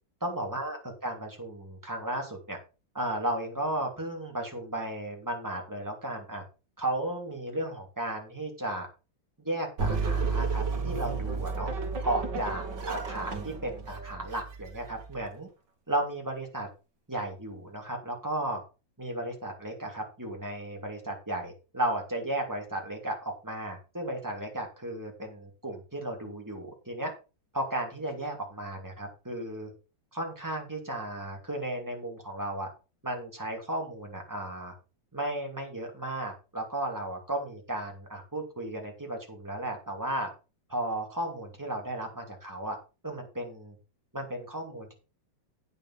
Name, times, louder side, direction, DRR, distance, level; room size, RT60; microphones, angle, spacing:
voice 1, 0.2-0.8 1.0-2.6 2.9-6.4 6.8-8.9 9.4-11.7 12.0-15.5 15.9-16.7 17.1-18.6 19.0-27.1 27.5-29.7 30.1-32.7 33.0-34.7 35.1-40.3 40.7-42.8 43.0-43.8 44.1-44.9, right 1 dB, 10° right, 0 dB, 2.7 m, -34 dB
sound 1, 9.8-15.3, right 4 dB, 65° right, 2.4 m, -32 dB
9.1 x 6.5 x 5.6 m, 0.32 s
omnidirectional pair, 2.0 m